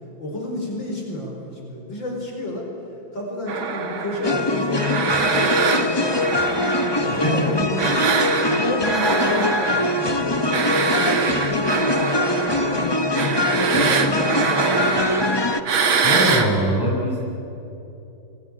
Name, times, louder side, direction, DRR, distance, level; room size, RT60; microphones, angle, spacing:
voice 1, 0.2-2.7 3.1-6.4 7.0-8.1 8.5-15.5 16.6-16.8, left 1 dB, 65° left, 0 dB, 5.7 m, -31 dB
sound 1, 3.5-7.4 7.8-16.5, right 5 dB, 80° right, 2.7 m, -24 dB
sound 2, 4.2-15.6, left 2 dB, 30° left, 0.4 m, -23 dB
voice 2, 16.0-17.2, equal, 10° left, -3 dB, 6.3 m, -22 dB
25.0 x 21.5 x 10.0 m, 2.9 s
omnidirectional pair, 2.2 m